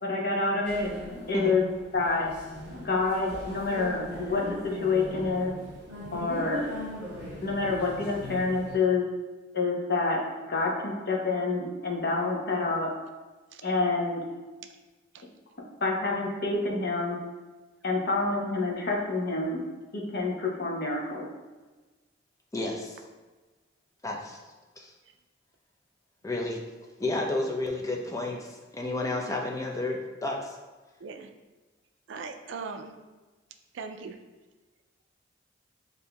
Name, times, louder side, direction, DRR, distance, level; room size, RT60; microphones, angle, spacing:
voice 1, 0.0-0.9 1.3-1.6 1.9-2.3 2.7-5.5 6.1-6.6 7.4-9.0 9.5-10.2 10.5-12.9 13.6-14.2 15.8-17.2 17.8-19.6 19.9-21.3, left 3 dB, 55° left, -1 dB, 0.8 m, -27 dB
sound 1, 0.6-8.8, left 1 dB, 5° right, 1.4 m, -39 dB
voice 2, 22.5-23.0 24.0-24.4 24.8-24.9 26.2-26.6 27.0-30.6, left 2 dB, 15° left, 0 dB, 0.5 m, -31 dB
voice 3, 32.1-32.9 33.7-34.2, right 4 dB, 65° right, 6 dB, 0.4 m, -39 dB
6.8 x 2.6 x 2.3 m, 1.2 s
head